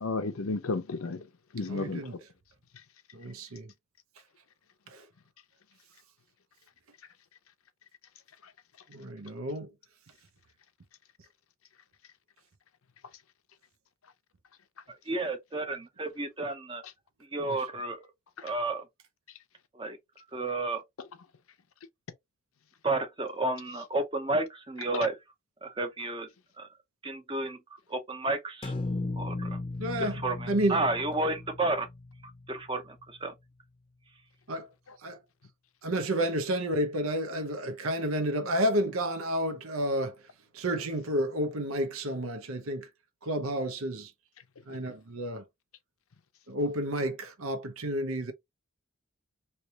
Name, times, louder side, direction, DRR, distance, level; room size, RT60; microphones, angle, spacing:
voice 1, 0.0-1.2 1.5-2.0, left 3 dB, 85° left, 0.7 m, -32 dB
voice 2, 1.7-2.1 3.1-3.7 8.9-9.7 17.5-17.6 29.8-30.8 34.5-34.7 35.0-35.2 35.8-40.1 40.5-42.9 43.2-44.1 44.7-45.4 46.5-48.3, right 1 dB, 90° right, 0.8 m, -30 dB
voice 3, 15.1-16.8 17.3-18.0 18.4-18.8 19.7-20.0 20.3-20.8 22.8-25.2 25.6-26.3 26.6-26.7 27.0-27.6 27.9-28.7 29.2-29.6 30.0-31.9 32.5-33.3, right 2 dB, 25° right, 0.7 m, -31 dB
sound 1, 28.6-32.8, left 2 dB, 25° left, 0.6 m, -36 dB
3.3 x 2.9 x 2.8 m
head